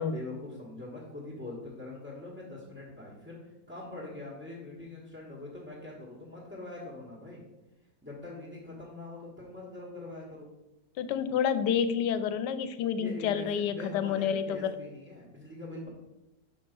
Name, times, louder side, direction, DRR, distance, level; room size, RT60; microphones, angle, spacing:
voice 1, 0.0-7.4 8.0-10.5 12.9-15.9, left 2 dB, 5° right, -8 dB, 1.3 m, -43 dB
voice 2, 11.0-14.7, left 8 dB, 85° left, 12 dB, 1.2 m, -29 dB
5.4 x 5.2 x 5.2 m, 0.99 s
omnidirectional pair, 1.8 m